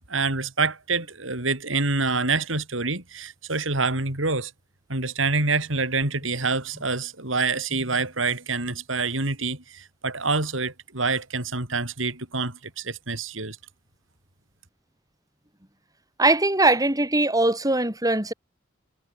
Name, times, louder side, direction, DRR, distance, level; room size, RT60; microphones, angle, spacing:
voice 1, 0.1-4.5 4.9-13.6, right 3 dB, 75° right, 4.8 m, -26 dB
voice 2, 16.2-18.3, right 2 dB, 20° right, 6.5 m, -21 dB
head